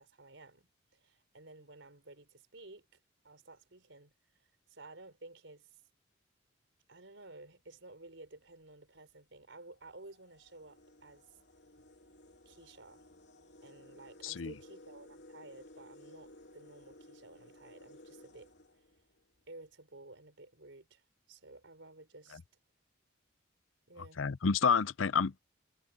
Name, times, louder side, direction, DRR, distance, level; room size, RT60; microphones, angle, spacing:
voice 1, 0.0-2.9 3.2-4.1 4.7-5.8 6.9-11.4 12.5-13.0 13.6-18.5 19.5-21.0 21.3-22.4 23.9-24.3, right 2 dB, 75° right, 4.0 m, -54 dB
sound 1, 8.1-8.3 9.2-9.3 9.7-19.5, left 1 dB, 60° left, 3.1 m, -57 dB
voice 2, 24.2-25.4, left 5 dB, 90° left, 0.6 m, -29 dB
head